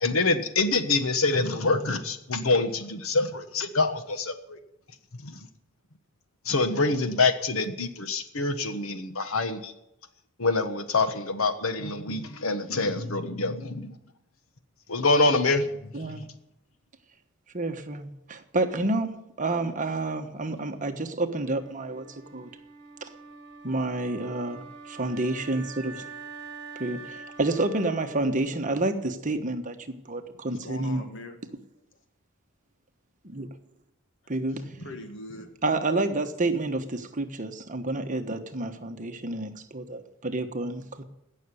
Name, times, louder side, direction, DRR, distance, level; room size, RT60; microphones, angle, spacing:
voice 1, 0.0-4.6 5.2-5.4 6.4-9.7 10.4-13.9 14.9-16.2, left 3 dB, 85° left, 9 dB, 1.3 m, -26 dB
voice 2, 15.9-16.3 17.5-22.5 23.0-23.1 23.6-25.9 26.8-31.0 33.2-33.5 34.3-34.6 35.6-41.0, right 2 dB, 40° right, 6 dB, 1.3 m, -29 dB
Wind instrument woodwind instrument, 21.2-29.3, right 4 dB, 55° right, 1.6 m, -45 dB
voice 3, 30.3-31.4 34.5-35.5, left 1 dB, 60° left, 6 dB, 1.8 m, -41 dB
17.0 x 6.7 x 10.0 m, 0.84 s
head